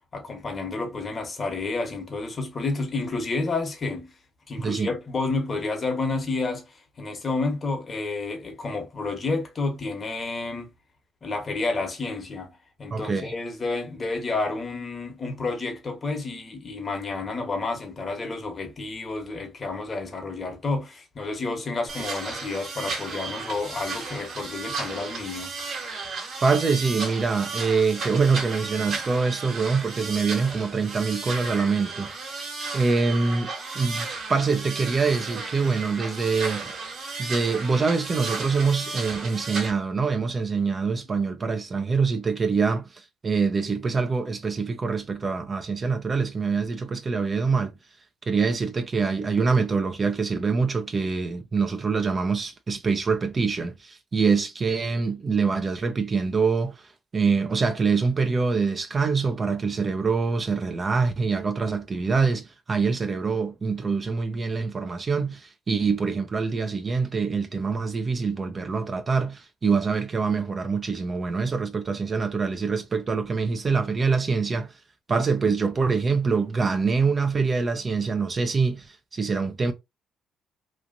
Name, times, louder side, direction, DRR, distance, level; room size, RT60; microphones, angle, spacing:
voice 1, 0.1-4.1 4.5-10.7 11.2-25.5, left 3 dB, 40° left, 1.3 m, -30 dB
voice 2, 12.9-13.3 26.4-32.1 32.7-36.7 37.2-47.7 48.3-74.7 75.1-79.7, right 4 dB, 40° right, 0.6 m, -25 dB
sound 1, 21.9-39.7, right 4 dB, 65° right, 1.5 m, -34 dB
3.1 x 2.4 x 2.5 m
supercardioid pair, 65°, 0 cm